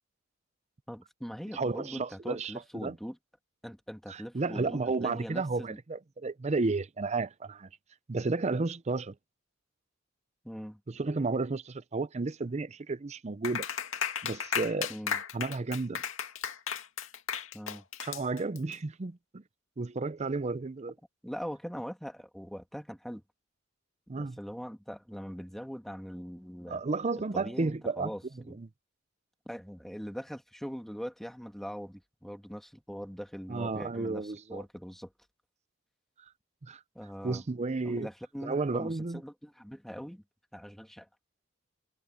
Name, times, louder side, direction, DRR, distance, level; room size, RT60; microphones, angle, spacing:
voice 1, 0.9-3.2 3.6-5.8 10.4-10.8 14.9-15.2 17.5-17.8 21.2-23.2 24.2-26.8 27.3-28.6 29.5-35.1 36.9-37.6 37.8-40.2 40.5-41.1, equal, ahead, 2.2 m, -42 dB
voice 2, 1.5-3.0 4.1-7.7 8.1-9.1 10.9-13.7 14.2-14.9 15.3-16.0 18.0-19.4 19.8-20.9 24.1-24.4 26.7-28.1 28.6-28.7 33.5-34.6 36.6-36.8 37.2-38.1 38.4-39.2, right 3 dB, 35° right, 0.5 m, -32 dB
Clapping, 13.4-18.7, left 7 dB, 85° left, 2.4 m, -35 dB
head